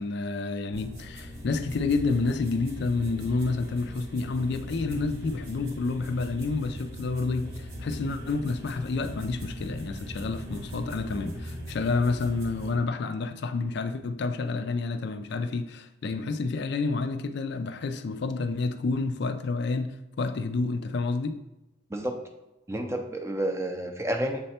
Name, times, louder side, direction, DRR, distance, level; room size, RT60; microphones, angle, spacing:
voice 1, 0.0-21.4, left 3 dB, 55° left, 0.4 m, -29 dB
sound 1, 0.7-12.7, equal, 85° right, 1.6 m, -39 dB
voice 2, 22.7-24.4, right 1 dB, 15° right, 0.4 m, -30 dB
7.3 x 3.3 x 4.2 m
head